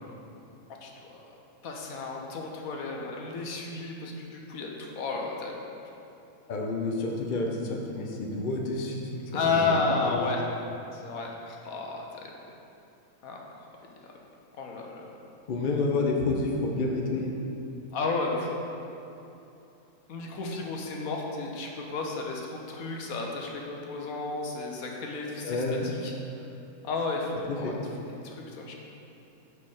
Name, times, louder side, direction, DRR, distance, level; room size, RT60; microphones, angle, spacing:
voice 1, 0.8-1.2 1.6-5.6 9.3-10.4 10.9-12.1 13.2-13.4 14.6-15.1 17.9-18.6 20.1-25.6 26.0-26.1 26.8-27.7 28.2-28.8, left 3 dB, 75° left, 0 dB, 1.3 m, -32 dB
voice 2, 6.5-9.7 10.0-10.3 15.5-17.3 25.4-25.9 27.5-27.7, left 3 dB, 45° left, 0 dB, 0.7 m, -29 dB
5.6 x 4.7 x 6.4 m, 2.9 s
omnidirectional pair, 1.5 m